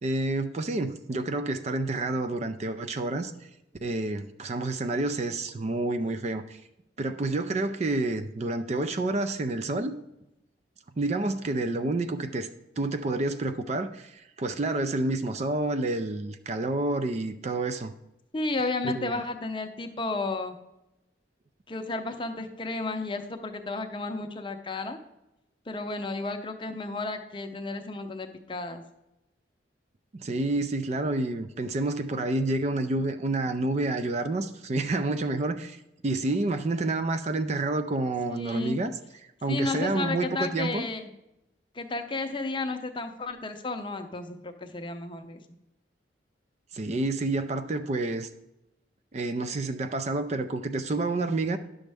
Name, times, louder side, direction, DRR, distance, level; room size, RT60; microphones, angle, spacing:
voice 1, 0.0-3.3 3.8-6.6 7.0-9.9 11.0-12.5 12.8-17.9 18.8-19.2 30.1-38.9 39.4-40.8 46.7-48.3 49.1-51.6, right 2 dB, 35° right, 0.4 m, -29 dB
voice 2, 18.3-20.6 21.7-25.0 25.7-28.8 38.3-38.8 39.5-41.1 41.7-45.4, left 3 dB, 25° left, 0.6 m, -32 dB
10.5 x 6.3 x 3.4 m
head